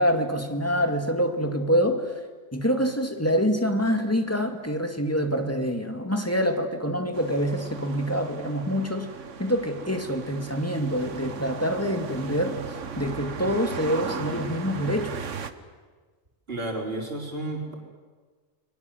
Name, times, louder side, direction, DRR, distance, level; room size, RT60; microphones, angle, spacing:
voice 1, 0.0-2.1 2.5-9.1 9.4-15.1, equal, 10° left, 5 dB, 2.2 m, -26 dB
sound 1, 7.1-15.5, right 6 dB, 65° right, 1.5 m, -37 dB
voice 2, 16.5-17.7, right 2 dB, 45° right, 1 dB, 4.7 m, -32 dB
29.5 x 23.0 x 7.9 m, 1.4 s
omnidirectional pair, 1.4 m